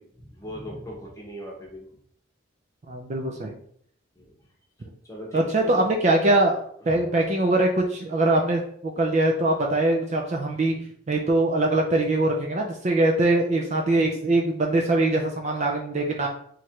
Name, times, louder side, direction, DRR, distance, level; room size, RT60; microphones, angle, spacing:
voice 1, 0.0-1.9 4.2-4.3 5.0-5.9 6.9-7.0, equal, 15° left, -2 dB, 0.9 m, -38 dB
voice 2, 2.9-3.5 5.3-10.8 11.1-16.3, right 2 dB, 35° right, 1 dB, 0.4 m, -22 dB
3.1 x 2.5 x 4.3 m, 0.63 s
head